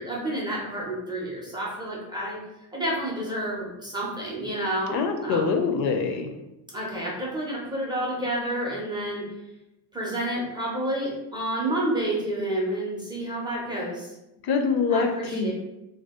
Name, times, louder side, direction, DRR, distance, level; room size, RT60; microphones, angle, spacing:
voice 1, 0.0-2.4 2.7-5.5 6.7-9.2 9.9-14.1 14.9-15.5, right 1 dB, 10° right, -5 dB, 0.4 m, -29 dB
voice 2, 4.9-6.3 14.4-15.5, left 5 dB, 65° left, 5 dB, 0.5 m, -24 dB
2.7 x 2.3 x 3.4 m, 0.93 s
cardioid pair, 170°, 39 cm